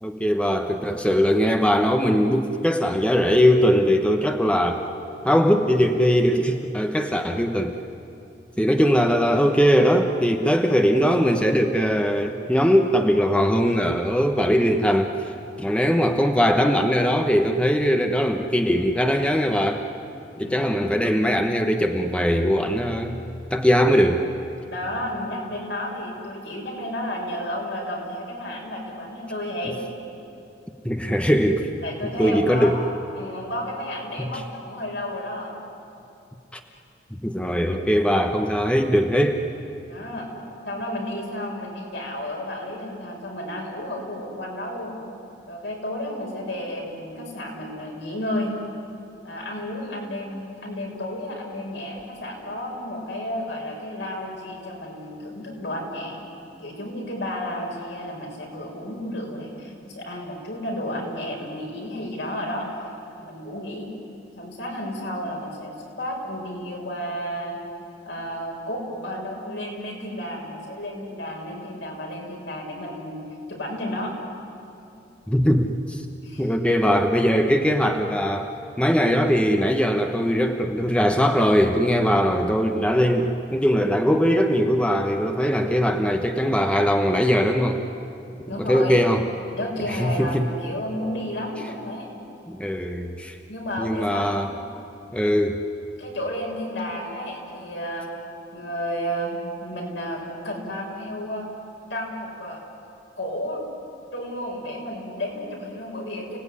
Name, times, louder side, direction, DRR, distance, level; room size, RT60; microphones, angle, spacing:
voice 1, 0.0-4.9 5.2-7.8 8.6-15.3 15.6-19.8 20.4-23.2 23.5-24.2 30.8-31.7 32.2-32.7 34.2-34.3 36.5-36.6 37.1-39.4 75.3-76.0 76.4-78.5 78.8-87.8 88.6-89.2 89.9-90.4 92.5-93.4 93.8-94.5 95.1-95.6, equal, 5° left, 4 dB, 1.1 m, -20 dB
voice 2, 24.7-29.8 31.8-32.9 33.2-35.5 39.9-40.3 40.6-45.0 45.5-48.5 49.2-56.2 56.6-62.7 63.2-63.9 64.4-67.6 68.0-73.2 73.5-74.1 76.2-76.5 88.5-89.0 89.5-92.1 93.5-94.6 96.0-98.1 98.5-101.5 101.9-102.6 103.2-103.6 104.1-106.4, equal, 75° left, -1 dB, 6.4 m, -32 dB
30.0 x 18.5 x 9.8 m, 2.7 s
head